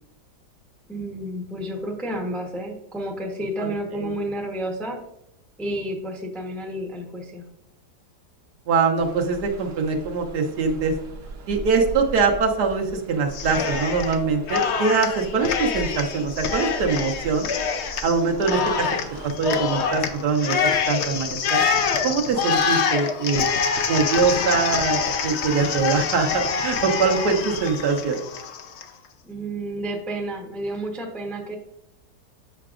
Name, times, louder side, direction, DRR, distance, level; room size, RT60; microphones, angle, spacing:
voice 1, 0.9-5.0 5.6-7.4 29.2-31.5, right 1 dB, ahead, 0 dB, 0.6 m, -30 dB
voice 2, 3.6-4.1 8.7-10.9 11.5-17.5 18.0-18.9 19.2-20.6 20.9-21.6 22.0-23.5 23.9-28.2, right 4 dB, 70° right, 2 dB, 1.4 m, -23 dB
sound 1, 9.0-19.3, right 3 dB, 55° right, 1.1 m, -39 dB
Cheering, 13.3-14.2 14.5-28.8, left 6 dB, 75° left, 0.6 m, -25 dB
7.7 x 5.7 x 2.5 m, 0.78 s
omnidirectional pair, 1.8 m